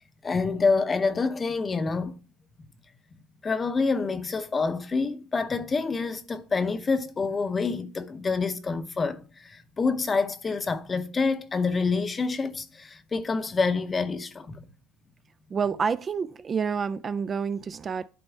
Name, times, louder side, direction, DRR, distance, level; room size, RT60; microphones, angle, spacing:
voice 1, 0.2-2.2 3.4-14.7, left 4 dB, 25° left, 0.7 m, -27 dB
voice 2, 15.5-18.1, right 6 dB, 30° right, 0.3 m, -28 dB
11.5 x 4.0 x 3.5 m
supercardioid pair, 100°, 0 cm